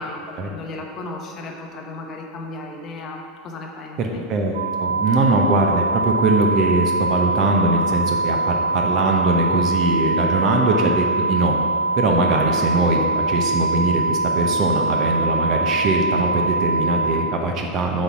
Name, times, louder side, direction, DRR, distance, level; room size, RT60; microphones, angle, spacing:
voice 1, 0.0-4.2, left 2 dB, 40° left, 1 dB, 1.0 m, -35 dB
voice 2, 4.0-11.6 11.9-18.0, right 2 dB, 45° right, 2 dB, 0.9 m, -21 dB
sound 1, 4.5-17.1, right 3 dB, 70° right, 0.7 m, -23 dB
7.9 x 4.3 x 4.8 m, 2.2 s
figure-of-eight pair, 80°, 0 cm